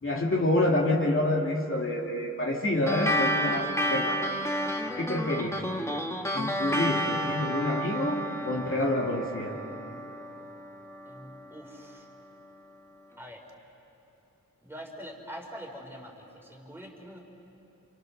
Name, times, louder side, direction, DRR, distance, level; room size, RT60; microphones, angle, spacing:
voice 1, 0.0-4.2 5.0-5.6 6.3-9.6, left 1 dB, 45° left, -2 dB, 2.6 m, -27 dB
sound 1, 2.9-11.7, equal, 10° left, 1.6 m, -31 dB
voice 2, 4.8-5.1 8.7-8.8 11.1-12.1 13.2-13.4 14.6-17.2, equal, 5° right, 0 dB, 4.1 m, -44 dB
29.0 x 27.0 x 6.5 m, 2.9 s
wide cardioid pair, 95°, 31 cm